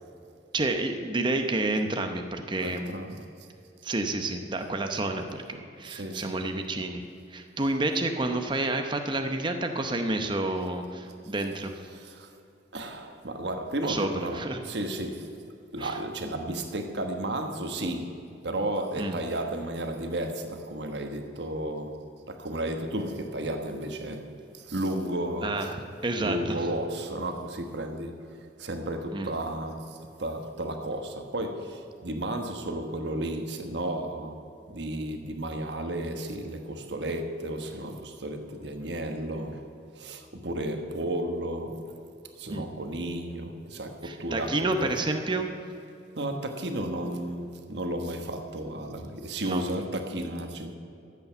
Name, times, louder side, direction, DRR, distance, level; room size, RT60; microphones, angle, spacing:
voice 1, 0.5-2.9 3.8-7.0 7.3-11.7 13.8-14.6 15.8-16.0 19.0-19.2 25.4-26.6 29.1-29.3 42.5-42.7 44.0-45.5 49.4-49.6, right 2 dB, 25° right, 0.8 m, -29 dB
voice 2, 2.6-3.3 5.8-6.4 11.4-12.3 12.7-15.4 15.7-24.3 24.5-25.7 26.2-28.2 28.6-34.4 34.7-39.6 39.9-41.8 42.4-45.0 46.2-50.8, right 1 dB, 70° right, 1.3 m, -33 dB
13.5 x 8.4 x 6.9 m
head